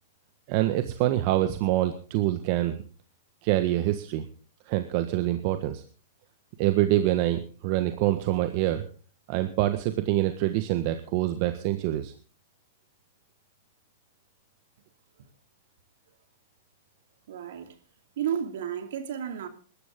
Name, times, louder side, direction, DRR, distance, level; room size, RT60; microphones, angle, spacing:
voice 1, 0.5-2.8 3.4-4.3 4.7-5.8 6.6-8.8 9.3-12.1, right 14 dB, 50° right, 1.4 m, -25 dB
voice 2, 17.3-17.8 18.2-19.5, right 9 dB, 70° right, 2.6 m, -32 dB
21.5 x 12.0 x 3.8 m
hypercardioid pair, 120°, 0 cm